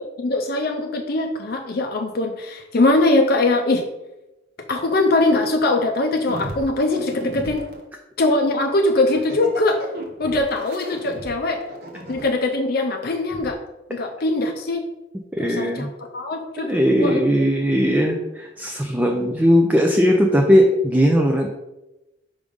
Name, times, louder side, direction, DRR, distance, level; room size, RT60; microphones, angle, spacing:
voice 1, 0.2-3.8 4.7-7.7 8.2-9.8 10.2-11.6 12.1-13.6 13.9-14.8 15.4-17.5, left 2 dB, 55° left, 3 dB, 0.6 m, -21 dB
sound 1, 6.3-7.8 8.8-12.5 13.3-13.5, right 1 dB, 55° right, 1.2 m, -36 dB
voice 2, 15.4-15.9 16.6-21.5, equal, 10° right, 1 dB, 0.5 m, -18 dB
5.1 x 3.6 x 5.3 m, 0.98 s
head